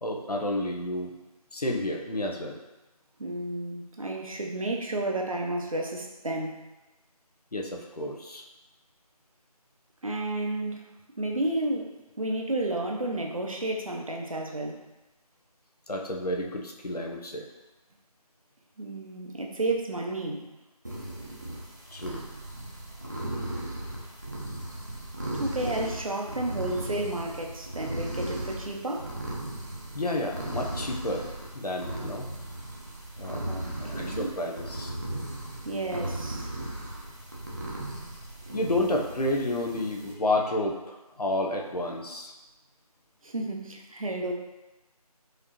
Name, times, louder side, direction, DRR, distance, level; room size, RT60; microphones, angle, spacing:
voice 1, 0.0-1.1 1.5-2.6 7.5-8.4 15.9-17.5 21.9-22.2 29.9-31.2 31.5-32.3 33.2-33.4 33.8-34.9 38.5-42.3, left 1 dB, 80° left, 1 dB, 0.8 m, -30 dB
voice 2, 3.2-6.6 10.0-10.9 11.2-14.8 18.8-20.5 25.4-29.1 33.4-34.4 35.6-36.5 43.2-44.3, right 2 dB, 60° right, 1 dB, 0.7 m, -32 dB
sound 1, 20.8-40.1, right 1 dB, 30° right, 0.7 m, -37 dB
4.9 x 3.0 x 2.9 m, 1.0 s
figure-of-eight pair, 170°, 20 cm